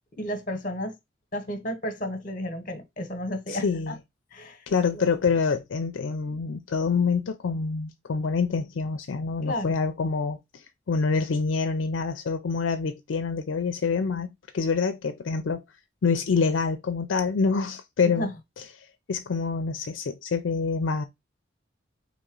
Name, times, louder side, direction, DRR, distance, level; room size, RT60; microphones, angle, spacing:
voice 1, 0.2-0.9 1.3-3.9 4.3-4.6 4.9-5.1 9.4-9.8 18.0-18.3, equal, 40° left, 1.0 m, -32 dB
voice 2, 3.5-3.9 4.7-15.6 16.0-18.3 19.1-21.0, left 5 dB, 75° left, 0.4 m, -26 dB
4.1 x 3.1 x 3.7 m
head